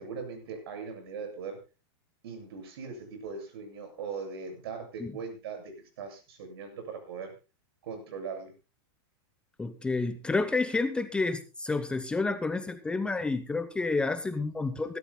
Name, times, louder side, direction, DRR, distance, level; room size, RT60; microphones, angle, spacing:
voice 1, 0.0-1.6 2.2-7.3 7.8-8.5, right 5 dB, 70° right, 6 dB, 7.7 m, -40 dB
voice 2, 9.6-15.0, left 3 dB, 5° left, 10 dB, 0.8 m, -30 dB
26.0 x 13.5 x 2.3 m, 0.31 s
supercardioid pair, 150°, 13 cm